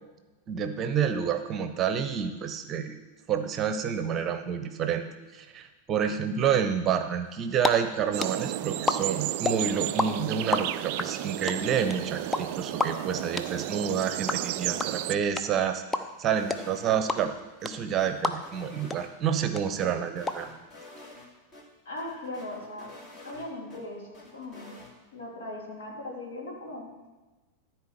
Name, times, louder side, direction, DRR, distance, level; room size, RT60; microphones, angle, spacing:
voice 1, 0.5-3.0 3.3-15.8 16.2-17.3 17.6-20.6, right 8 dB, 30° right, 9 dB, 0.9 m, -29 dB
sound 1, 7.3-7.7 8.0-10.1 10.3-18.6 18.9-19.0 19.3-20.3, left 2 dB, 10° left, 0.6 m, -29 dB
sound 2, 8.1-15.1, right 14 dB, 45° right, 0.3 m, -33 dB
sound 3, 16.3-17.3 17.6-19.4 19.8-21.3 21.5-21.6 22.0-23.8 24.1-24.9, left 2 dB, 30° left, 2.5 m, -49 dB
voice 2, 21.8-22.9 23.2-24.7 25.1-26.9, left 1 dB, 60° left, -2 dB, 3.2 m, -39 dB
13.5 x 4.5 x 7.3 m, 1.2 s
figure-of-eight pair, 90°, 0 cm